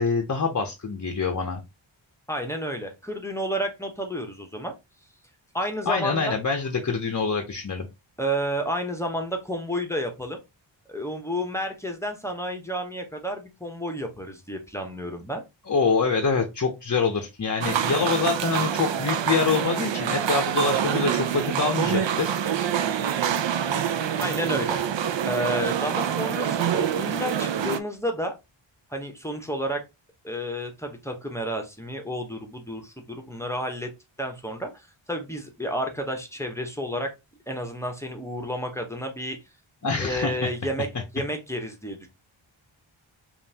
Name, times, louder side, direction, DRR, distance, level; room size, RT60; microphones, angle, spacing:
voice 1, 0.0-1.6 5.9-7.9 15.7-22.3 39.8-40.5, left 4 dB, 40° left, 4 dB, 0.6 m, -25 dB
voice 2, 2.3-4.7 5.5-6.4 8.2-10.4 10.9-15.4 24.2-24.8 25.3-28.3 28.9-29.8 30.2-33.9 34.2-37.1 37.5-39.4 40.0-40.9 41.1-42.1, equal, 5° left, 4 dB, 0.8 m, -31 dB
sound 1, 17.6-27.8, right 9 dB, 65° right, 0.5 m, -26 dB
5.2 x 2.5 x 2.8 m, 0.23 s
wide cardioid pair, 90°, 49 cm